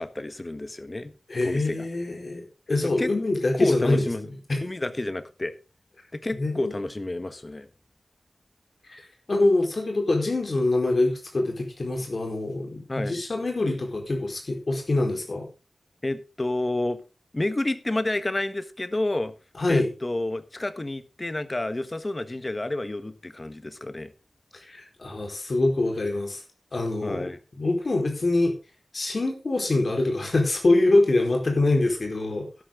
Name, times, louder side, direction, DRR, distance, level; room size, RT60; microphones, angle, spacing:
voice 1, 0.0-1.1 1.4-1.9 2.8-3.1 3.5-4.3 4.6-5.5 6.1-7.7 12.9-13.2 16.0-17.0 17.3-19.3 19.7-24.1 27.0-27.4, left 2 dB, 30° left, 1.4 m, -30 dB
voice 2, 1.3-4.6 6.4-6.8 8.9-9.0 9.3-15.5 19.6-19.9 24.7-26.4 26.7-27.3 27.6-28.5 28.9-32.6, left 2 dB, 55° left, 4.3 m, -24 dB
12.5 x 11.5 x 3.9 m
wide cardioid pair, 90°, 0 cm